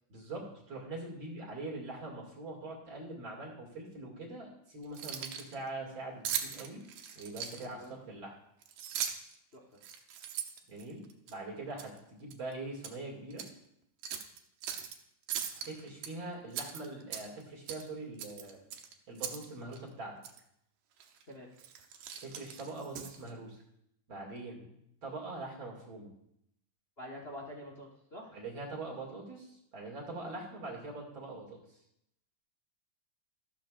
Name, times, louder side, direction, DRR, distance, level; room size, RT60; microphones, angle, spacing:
voice 1, 0.1-6.8 7.2-8.3 10.7-13.4 15.5-18.6 19.1-20.2 22.2-23.6 24.1-24.7 25.0-26.1 28.3-31.6, right 2 dB, 40° right, -2 dB, 2.8 m, -43 dB
Keys jangling, 4.8-5.5 6.2-7.8 8.6-9.3 9.8-11.3 11.8-12.0 12.3-13.0 13.3-13.5 14.0-14.9 15.3-16.1 16.5-17.4 17.7-17.9 18.2-19.5 19.7-19.8 20.2-20.4 21.0-21.2 21.6-23.3, right 8 dB, 80° right, 2.5 m, -39 dB
voice 2, 7.6-7.9 9.5-9.7 21.3-21.5 27.0-28.3, left 1 dB, 55° left, -1 dB, 0.6 m, -46 dB
13.5 x 13.0 x 2.5 m, 0.76 s
omnidirectional pair, 3.7 m